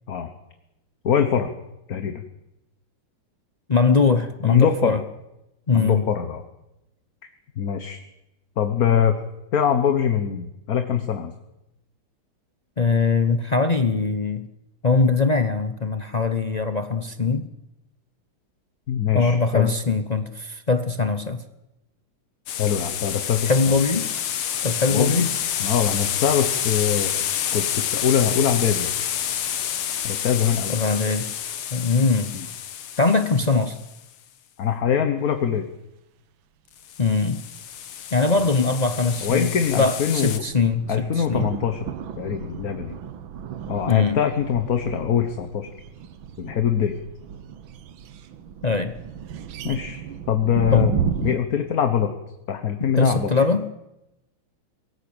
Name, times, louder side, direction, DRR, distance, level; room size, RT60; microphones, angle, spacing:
voice 1, 1.0-1.5 1.9-2.2 4.4-5.0 5.7-6.4 7.6-8.0 8.6-9.1 9.5-11.3 18.9-19.7 22.6-23.8 24.9-25.3 25.6-27.1 27.5-28.9 30.0-30.7 32.3-32.5 34.6-35.7 38.3-38.4 39.2-40.4 40.9-41.8 42.2-42.9 43.7-45.7 46.4-46.9 49.6-50.0 50.3-50.9 51.2-52.1 52.5-53.3, left 8 dB, 50° left, 7 dB, 1.5 m, -23 dB
voice 2, 3.7-5.0 5.7-6.1 12.8-14.5 14.8-17.5 19.1-21.4 23.4-24.1 24.6-25.3 30.7-31.3 31.7-32.3 33.0-33.8 37.0-37.4 38.1-39.5 39.8-41.5 43.9-44.2 48.6-49.0 50.7-50.9 52.9-53.7, left 4 dB, 65° left, 9 dB, 0.4 m, -21 dB
sound 1, 22.5-33.9 36.8-40.4, left 9 dB, 85° left, 2.1 m, -29 dB
sound 2, 38.7-51.4, right 7 dB, 70° right, 1.7 m, -34 dB
23.0 x 14.0 x 8.8 m, 0.91 s
omnidirectional pair, 2.3 m